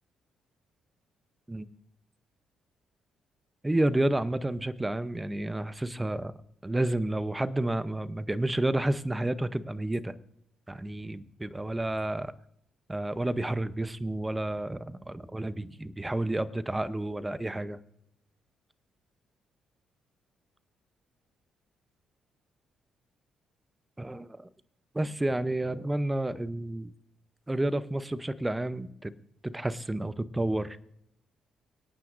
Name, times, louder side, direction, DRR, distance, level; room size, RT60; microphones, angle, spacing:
voice 1, 3.6-6.3 6.6-10.1 10.7-12.3 12.9-17.8 24.0-24.5 24.9-26.9 27.5-29.1 29.4-30.8, right 1 dB, 15° right, 14 dB, 0.7 m, -30 dB
24.0 x 9.2 x 2.6 m, 0.75 s
cardioid pair, 90°, 0 cm